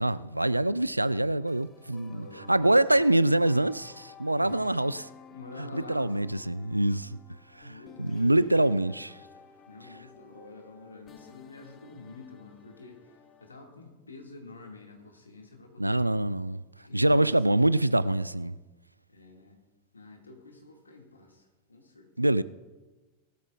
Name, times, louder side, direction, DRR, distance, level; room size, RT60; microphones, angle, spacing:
voice 1, 0.0-5.1 5.6-7.2 7.5-9.1 15.8-16.6 16.9-18.6 22.2-22.4, right 1 dB, 85° right, 0.3 m, -25 dB
sound 1, 1.3-13.5, left 6 dB, 25° left, 0.9 m, -54 dB
voice 2, 2.0-2.7 4.4-4.8 5.3-6.1 7.7-9.1 9.7-16.0 16.8-17.7 19.1-19.6 19.9-22.4, left 3 dB, 80° left, 2.3 m, -48 dB
18.5 x 12.5 x 2.5 m
figure-of-eight pair, 90°, 0 cm